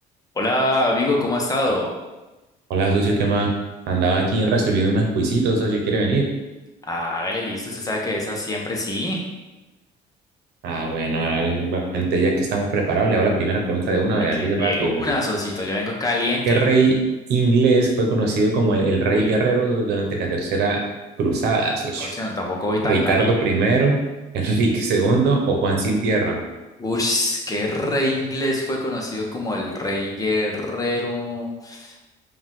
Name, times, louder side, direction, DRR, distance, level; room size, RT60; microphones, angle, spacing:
voice 1, 0.3-1.9 6.9-9.2 14.2-16.6 19.1-19.3 22.0-23.3 26.8-31.9, left 1 dB, 20° left, -1 dB, 0.9 m, -25 dB
voice 2, 2.7-3.5 3.9-6.3 10.6-15.1 16.5-17.0 17.3-20.8 21.2-22.1 22.8-24.0 24.3-26.4, right 3 dB, 80° right, 1 dB, 0.9 m, -20 dB
5.1 x 2.5 x 3.7 m, 1.1 s
cardioid pair, 110°, 17 cm